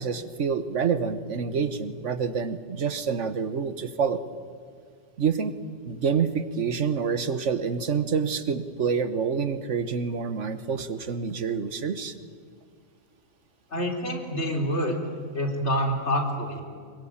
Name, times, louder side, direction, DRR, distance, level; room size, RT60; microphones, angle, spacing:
voice 1, 0.0-4.2 5.2-5.5 5.8-12.1, right 6 dB, 70° right, 11 dB, 1.5 m, -27 dB
voice 2, 13.7-14.9 15.3-16.6, equal, 60° left, 1 dB, 3.9 m, -27 dB
25.0 x 22.5 x 8.8 m, 2.1 s
omnidirectional pair, 1.3 m